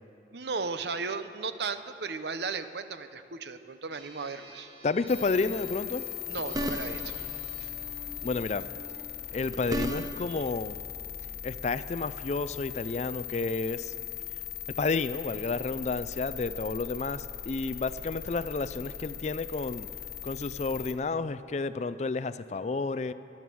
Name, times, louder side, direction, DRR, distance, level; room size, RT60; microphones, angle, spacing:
voice 1, 0.3-4.7 6.3-7.2 7.6-7.7 10.3-10.4, right 4 dB, 65° right, 11 dB, 0.7 m, -35 dB
sound 1, 3.9-9.0, right 1 dB, 50° right, 4.3 m, -50 dB
voice 2, 4.8-6.0 8.2-8.7 9.3-10.8 11.4-13.9 14.8-19.9 20.2-23.1, left 3 dB, 40° left, 14 dB, 0.4 m, -31 dB
sound 2, 5.1-20.9, left 10 dB, 55° left, 1.2 m, -39 dB
sound 3, 6.3-7.2 9.2-10.4, right 1 dB, 20° right, 0.7 m, -34 dB
19.5 x 12.0 x 6.2 m, 2.8 s
head